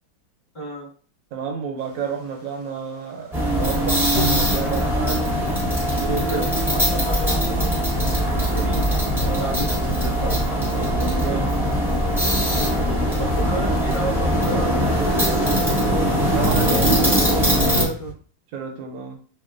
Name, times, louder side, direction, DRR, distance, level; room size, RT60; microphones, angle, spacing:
voice 1, 0.5-0.9 6.2-8.9 9.2-9.7 12.5-12.9 13.2-16.1 16.6-18.1, right 2 dB, 25° left, -5 dB, 1.2 m, -33 dB
voice 2, 1.3-5.3 5.8-6.4 9.3-9.4 10.7-11.8 16.3-17.5 18.5-19.2, right 6 dB, 70° right, 3 dB, 1.1 m, -31 dB
sound 1, 1.9-2.9 3.2-3.4 3.7-3.9 4.1-18.1, left 2 dB, 65° left, 1.1 m, -35 dB
sound 2, 3.3-17.8, equal, 5° right, 0.5 m, -21 dB
2.9 x 2.7 x 2.4 m, 0.42 s
omnidirectional pair, 2.3 m